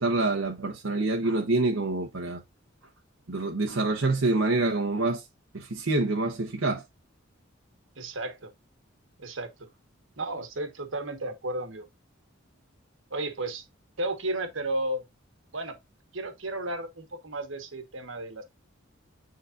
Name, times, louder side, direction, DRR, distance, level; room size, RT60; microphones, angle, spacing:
voice 1, 0.0-2.4 3.3-5.2 5.5-6.8, right 2 dB, 85° right, 1.1 m, -26 dB
voice 2, 8.0-8.5 9.2-9.5 10.2-11.8 13.1-13.6 14.0-15.0 15.5-15.7 16.1-18.4, right 2 dB, 70° right, 1.5 m, -33 dB
9.6 x 3.9 x 2.5 m
head